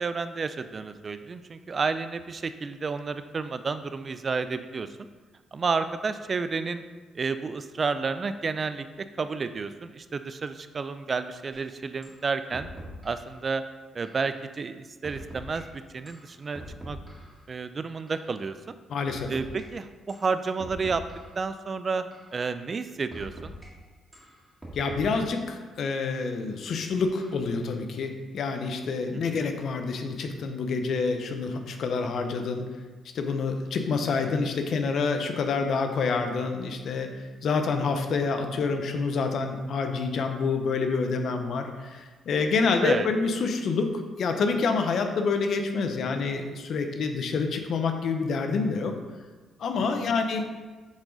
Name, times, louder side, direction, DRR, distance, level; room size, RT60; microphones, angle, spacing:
voice 1, 0.0-4.9 5.5-6.8 7.2-8.9 9.2-12.7 13.0-13.6 13.9-15.6 15.9-17.0 17.5-18.7 19.3-21.0 21.4-22.0 22.3-23.5 29.3-29.4 42.8-43.1, right 4 dB, 40° right, 11 dB, 0.3 m, -31 dB
sound 1, 11.5-11.6 12.0-12.2 12.5-13.3 14.0-14.3 15.0-15.6 16.1-17.4 18.1-18.3 19.1-19.6 20.1-20.3 20.6-21.4 22.1-22.4 23.1-23.7 24.1-25.4 26.1-26.3 27.2-27.5, equal, 10° right, 1.9 m, -43 dB
voice 2, 18.9-19.3 24.7-32.7 33.1-48.9 49.6-50.4, left 4 dB, 65° left, 5 dB, 0.7 m, -27 dB
7.2 x 3.8 x 3.9 m, 1.4 s
cardioid pair, 90°, 0 cm